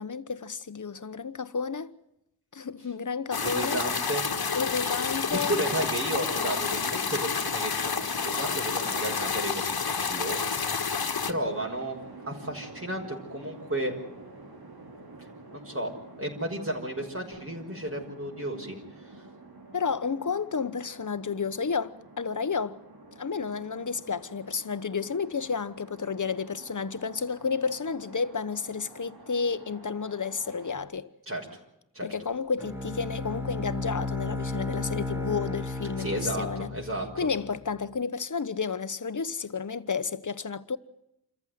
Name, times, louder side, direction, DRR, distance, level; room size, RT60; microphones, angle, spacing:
voice 1, 0.0-1.9 2.5-3.8 4.5-5.6 19.7-22.8 23.2-31.1 32.0-36.7 37.2-40.8, left 5 dB, 55° left, 1.2 m, -31 dB
sound 1, 3.3-11.3, left 5 dB, 70° left, 1.7 m, -29 dB
voice 2, 3.4-4.3 5.1-10.8 11.3-12.0 12.3-13.9 15.5-15.9 16.2-18.8 31.3-31.6 31.9-32.1 36.0-37.1, right 1 dB, 35° right, 5.7 m, -33 dB
sound 2, 11.3-30.8, right 2 dB, 75° right, 4.1 m, -49 dB
Bowed string instrument, 32.6-37.6, left 2 dB, 5° right, 3.6 m, -34 dB
28.0 x 14.5 x 9.5 m
wide cardioid pair, 90°, 38 cm